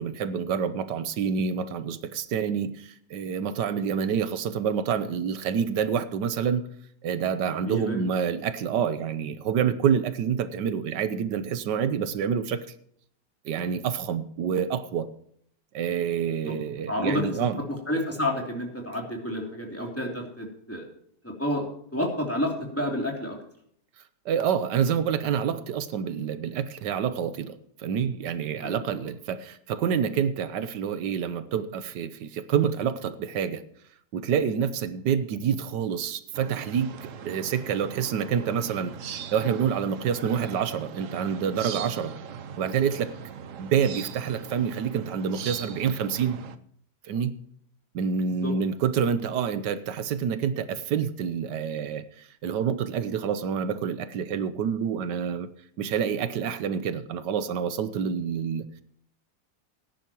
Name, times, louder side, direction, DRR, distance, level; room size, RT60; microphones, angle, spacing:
voice 1, 0.0-6.6 7.0-12.7 13.4-15.1 15.7-17.6 24.2-33.6 34.1-42.1 42.6-43.1 43.6-46.4 47.0-47.3 47.9-55.5 55.8-58.7, right 7 dB, 85° right, 12 dB, 1.4 m, -27 dB
voice 2, 7.5-8.0 16.4-16.6 16.9-17.5 17.9-20.9 21.2-23.4 28.6-28.8 48.4-48.5, left 1 dB, 10° left, -1 dB, 3.0 m, -30 dB
sound 1, 36.3-46.6, right 7 dB, 60° right, 1.0 m, -40 dB
19.0 x 10.5 x 3.0 m, 0.65 s
omnidirectional pair, 1.8 m